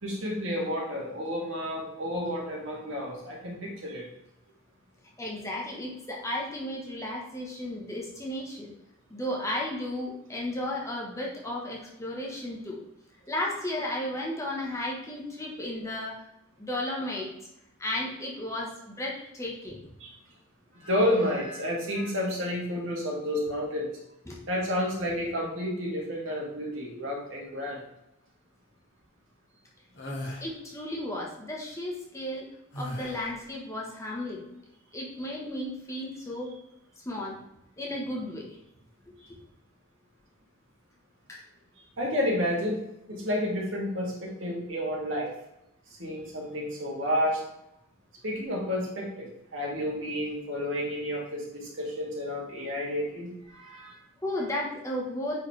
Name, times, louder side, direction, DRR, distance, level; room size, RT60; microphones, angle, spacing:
voice 1, 0.0-4.1 20.0-20.1 20.8-23.9 24.5-27.8 39.2-39.3 42.0-42.8 43.1-45.3 46.0-47.4 48.2-54.0, equal, 65° right, -3 dB, 2.4 m, -30 dB
voice 2, 5.2-8.7 9.1-12.8 13.3-16.2 16.6-17.3 17.8-19.8 24.3-24.4 30.4-32.5 32.7-34.4 34.9-36.5 37.0-37.4 37.8-38.6 39.3-39.4 41.3-41.4 54.2-55.4, left 1 dB, 15° left, -3 dB, 1.3 m, -34 dB
sound 1, 29.9-30.5 32.7-33.4, left 1 dB, 55° left, 1.9 m, -37 dB
9.1 x 4.8 x 3.3 m, 0.82 s
head